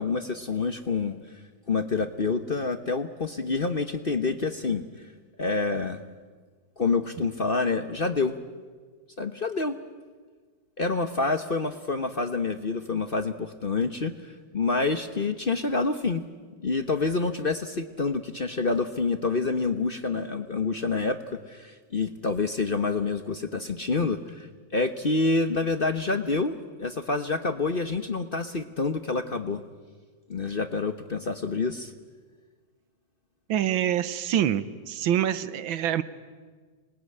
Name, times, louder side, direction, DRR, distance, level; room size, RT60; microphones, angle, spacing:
voice 1, 0.0-1.4 1.7-4.8 5.4-6.0 6.8-8.4 9.2-9.8 10.8-16.2 16.6-29.6 30.3-31.9, left 3 dB, 35° left, 9 dB, 0.9 m, -27 dB
voice 2, 33.5-36.0, right 10 dB, 90° right, 15 dB, 1.8 m, -26 dB
26.5 x 20.5 x 9.7 m, 1.5 s
omnidirectional pair, 2.1 m